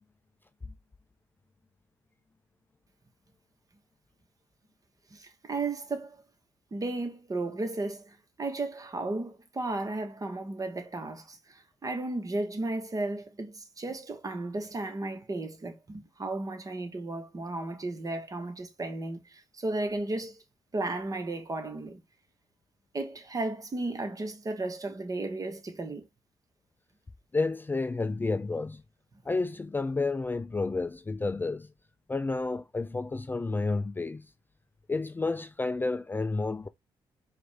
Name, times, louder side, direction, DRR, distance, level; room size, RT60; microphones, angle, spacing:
voice 1, 5.1-6.2 6.7-20.4 20.7-22.0 22.9-26.0, right 2 dB, 35° right, 1.4 m, -34 dB
voice 2, 27.3-28.8 29.3-31.7 32.1-34.3 34.9-36.7, left 3 dB, 20° left, 0.4 m, -30 dB
4.8 x 2.6 x 3.4 m
supercardioid pair, 60°, 11 cm